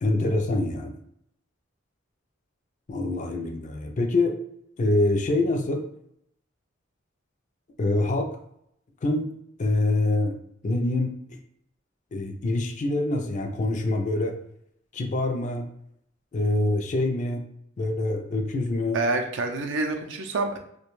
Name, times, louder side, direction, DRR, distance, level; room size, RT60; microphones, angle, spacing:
voice 1, 0.0-1.0 2.9-4.4 4.8-5.9 7.8-8.3 9.0-9.3 9.6-10.4 10.6-11.4 12.1-14.4 14.9-15.7 16.3-17.4 17.8-19.0, left 2 dB, 40° left, 4 dB, 0.4 m, -25 dB
voice 2, 18.9-20.6, right 3 dB, 65° right, 4 dB, 0.4 m, -27 dB
2.4 x 2.1 x 3.0 m, 0.74 s
head